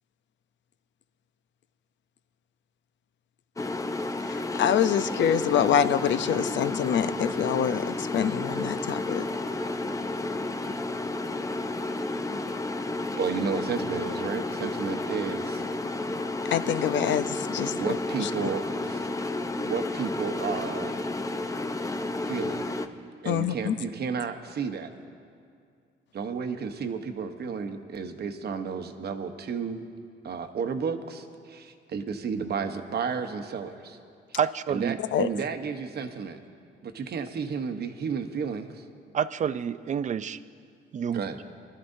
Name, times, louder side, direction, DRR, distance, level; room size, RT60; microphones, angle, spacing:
sound 1, 3.6-22.9, left 2 dB, 15° left, 0.6 m, -31 dB
voice 1, 4.3-9.2 16.5-17.7 18.2-18.3 23.3-23.7 35.1-35.3, left 9 dB, 70° left, 12 dB, 0.6 m, -26 dB
voice 2, 13.1-15.6 17.7-19.1 19.5-21.0 22.3-22.7 23.2-24.9 26.1-29.8 30.2-34.0 34.7-36.4 36.8-38.8 41.1-41.4, right 6 dB, 55° right, 7 dB, 1.0 m, -32 dB
voice 3, 34.4-35.0 39.1-40.4 40.9-41.3, right 8 dB, 40° right, 15 dB, 0.4 m, -28 dB
23.0 x 12.5 x 2.7 m, 2.3 s
cardioid pair, 90°, 20 cm